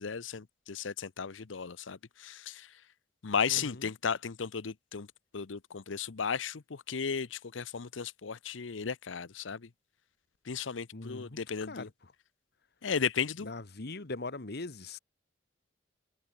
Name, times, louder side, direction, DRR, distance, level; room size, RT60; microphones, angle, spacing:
voice 1, 0.0-2.7 3.2-5.1 5.3-9.7 10.5-11.9 12.8-13.5, left 6 dB, 85° left, 0.8 m, -35 dB
voice 2, 10.9-11.4 11.7-11.8 13.5-15.0, left 3 dB, 60° left, 1.5 m, -40 dB
head